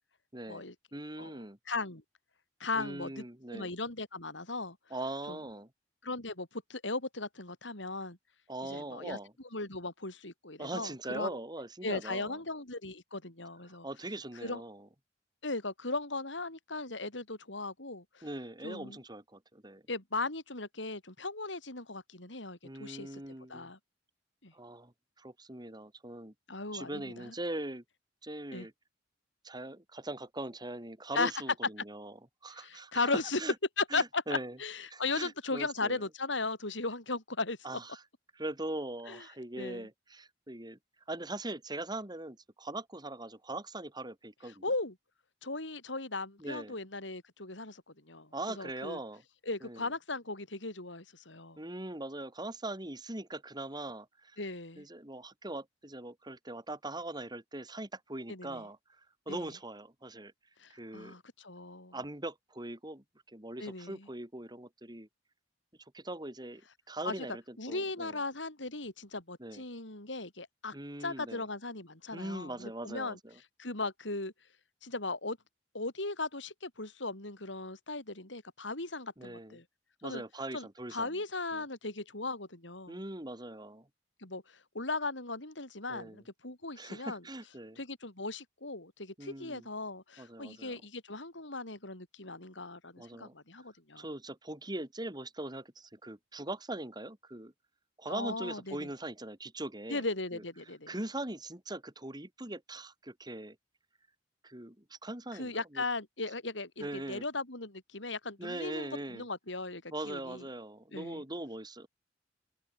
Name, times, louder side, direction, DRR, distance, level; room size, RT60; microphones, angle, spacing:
voice 1, 0.3-0.6 0.9-1.6 2.7-3.7 4.9-5.7 8.5-9.3 10.6-12.4 13.7-14.9 18.2-19.8 22.6-23.7 24.5-26.3 26.7-27.8 28.2-28.7 29.4-32.1 32.4-33.5 33.9-34.6 34.9-36.0 37.6-38.0 38.3-40.8 41.1-44.6 46.4-46.8 48.3-49.2 49.6-49.9 51.6-54.4 54.8-60.3 60.7-61.2 61.9-65.1 65.9-66.6 66.9-68.2 69.4-69.6 70.7-71.5 72.1-73.4 79.2-79.6 80.0-81.2 81.5-81.6 82.9-83.9 85.9-86.2 86.8-87.8 89.2-89.7 90.2-90.8 93.0-93.3 94.0-97.5 98.0-100.1 100.3-100.4 100.9-103.6 104.4-105.8 106.8-107.2 108.4-109.3 109.9-111.9, right 1 dB, 25° right, 3.7 m, -41 dB
voice 2, 1.7-2.0 2.6-3.2 3.5-4.8 5.3-5.4 6.0-8.2 8.6-9.2 9.5-11.4 11.8-13.9 14.4-14.6 15.4-18.3 18.6-19.0 19.9-23.2 23.5-23.8 24.4-24.5 26.5-27.3 28.5-28.7 31.1-31.3 32.6-33.4 33.8-37.6 39.1-39.2 39.6-39.9 44.6-44.9 45.4-49.0 49.5-51.6 54.4-54.9 58.3-58.6 59.3-59.5 60.6-62.0 63.6-64.1 67.0-67.3 67.6-70.8 71.0-73.2 73.6-74.3 74.8-75.4 75.7-79.6 80.0-80.2 80.5-83.0 84.2-87.2 87.8-94.1 98.1-98.9 99.9-100.9 105.3-110.4 110.9-111.2, left 3 dB, 80° left, 6.0 m, -37 dB
open air
head